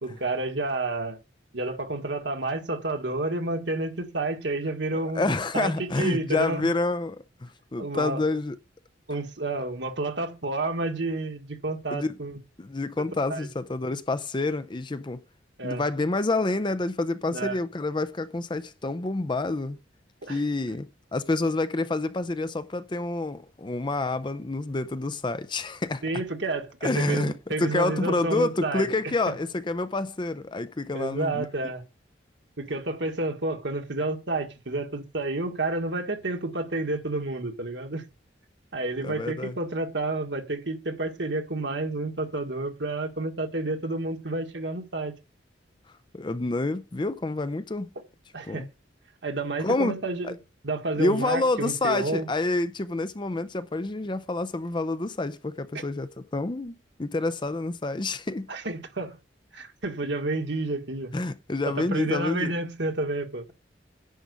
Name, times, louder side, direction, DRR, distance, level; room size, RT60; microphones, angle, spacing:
voice 1, 0.0-1.2 1.5-6.7 7.8-8.2 9.1-12.4 13.3-13.5 15.6-15.8 17.3-17.6 20.2-20.4 26.0-28.9 30.9-31.8 32.6-38.0 38.7-45.2 48.3-48.7 49.2-50.4 50.6-52.3 58.5-59.2 59.5-61.1 61.6-63.5, right 2 dB, 65° right, 1.7 m, -30 dB
voice 2, 4.9-8.6 11.9-12.2 12.6-15.2 15.6-19.8 20.3-26.0 26.8-31.5 39.0-39.6 46.1-47.9 48.4-48.7 49.6-50.0 50.2-50.4 51.0-58.5 61.1-62.5, left 2 dB, 25° left, 0.5 m, -28 dB
10.0 x 5.1 x 8.3 m
head